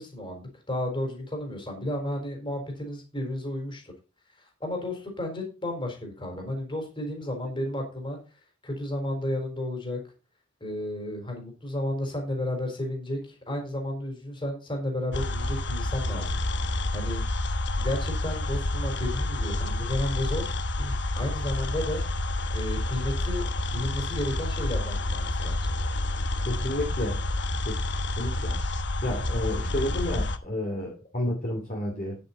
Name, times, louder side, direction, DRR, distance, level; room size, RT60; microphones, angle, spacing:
voice 1, 0.0-3.9 4.6-8.2 8.6-10.0 10.6-16.4 16.9-17.2 17.8-20.5 20.8-22.0 22.5-23.4 23.7-25.7, left 1 dB, 25° left, 2 dB, 4.0 m, -32 dB
sound 1, 15.1-30.4, left 1 dB, 60° left, 1.0 m, -29 dB
voice 2, 26.5-27.2 27.7-27.8 28.2-28.5 29.0-32.2, left 1 dB, 40° left, -1 dB, 2.6 m, -30 dB
9.7 x 8.5 x 4.2 m, 0.32 s
head